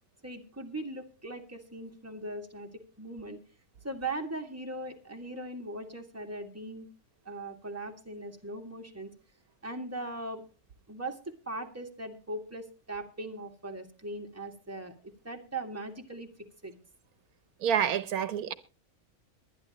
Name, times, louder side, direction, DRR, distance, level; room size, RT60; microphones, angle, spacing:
voice 1, 0.2-3.4 3.8-6.9 7.3-9.1 9.6-10.4 10.9-16.7, right 2 dB, 10° right, 1.9 m, -39 dB
voice 2, 17.6-18.5, right 8 dB, 85° right, 1.4 m, -28 dB
22.5 x 10.5 x 2.9 m
omnidirectional pair, 1.5 m